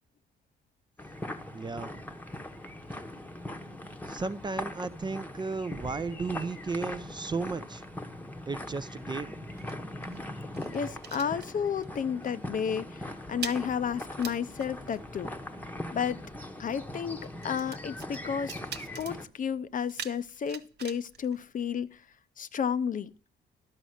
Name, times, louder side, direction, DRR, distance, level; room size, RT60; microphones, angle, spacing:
sound 1, 1.0-19.2, left 1 dB, 10° left, 0.9 m, -41 dB
voice 1, 1.5-2.0 4.1-7.8 8.5-9.4, right 4 dB, 20° right, 0.4 m, -34 dB
sound 2, 9.4-12.0 12.2-12.5 12.8-22.2, right 8 dB, 55° right, 0.8 m, -46 dB
voice 2, 10.7-15.3 15.9-16.2 16.6-18.5 19.0-22.0 22.4-23.1, left 7 dB, 45° left, 0.5 m, -32 dB
11.5 x 5.1 x 6.3 m
cardioid pair, 90°, 20 cm